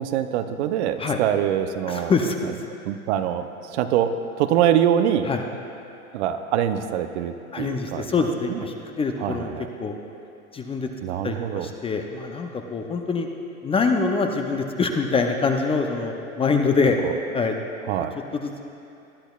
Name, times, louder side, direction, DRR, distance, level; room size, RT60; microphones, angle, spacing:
voice 1, 0.0-2.1 2.8-4.1 4.4-5.3 6.1-8.1 8.5-8.6 9.2-9.7 11.0-11.7 17.0-17.1 17.9-18.1, right 10 dB, 50° right, 9 dB, 0.7 m, -24 dB
voice 2, 1.9-2.4 5.3-5.4 7.5-9.5 9.8-9.9 10.5-10.9 11.2-13.3 13.6-17.0 17.3-17.5 18.3-18.7, left 4 dB, 15° left, 4 dB, 0.6 m, -24 dB
20.5 x 11.5 x 2.3 m, 2.7 s
hypercardioid pair, 100°, 42 cm